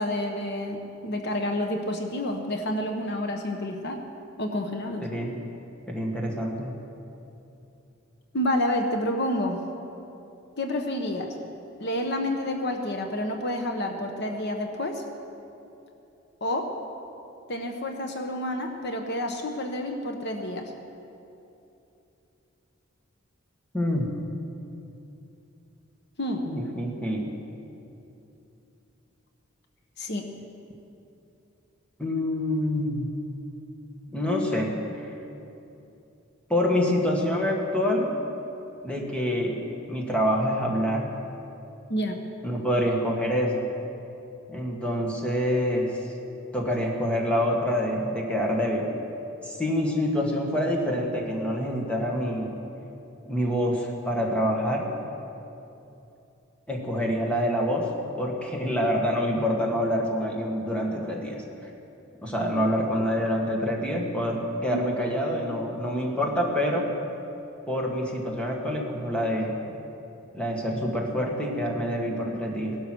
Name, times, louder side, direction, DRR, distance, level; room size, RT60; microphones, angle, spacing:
voice 1, 0.0-4.0 4.4-5.1 8.3-9.6 10.6-11.3 11.8-15.0 16.4-16.7 17.5-20.7 26.2-26.5 30.0-30.3 41.9-42.2 64.7-64.8, left 1 dB, 55° left, 4 dB, 1.1 m, -29 dB
voice 2, 5.0-5.4 5.9-6.7 23.7-24.1 26.5-27.3 32.0-33.1 34.1-35.1 36.5-38.2 38.8-41.1 42.4-43.7 44.5-46.0 46.5-48.9 49.4-52.6 53.3-54.9 56.7-57.9 58.2-61.4 62.2-66.9 67.7-69.6 70.3-72.8, equal, 5° left, -1 dB, 1.8 m, -26 dB
17.5 x 12.0 x 6.2 m, 2.8 s
head